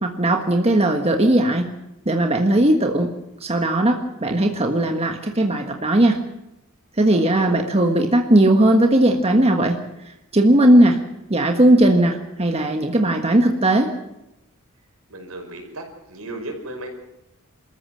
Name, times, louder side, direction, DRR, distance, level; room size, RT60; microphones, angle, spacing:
voice 1, 0.0-1.7 2.0-3.1 3.4-6.2 7.0-9.8 10.3-11.0 11.3-13.9, right 1 dB, 30° right, 3 dB, 1.5 m, -17 dB
voice 2, 7.1-7.7 15.1-16.9, right 1 dB, 75° right, 4 dB, 5.3 m, -35 dB
27.5 x 14.0 x 7.8 m, 0.90 s
head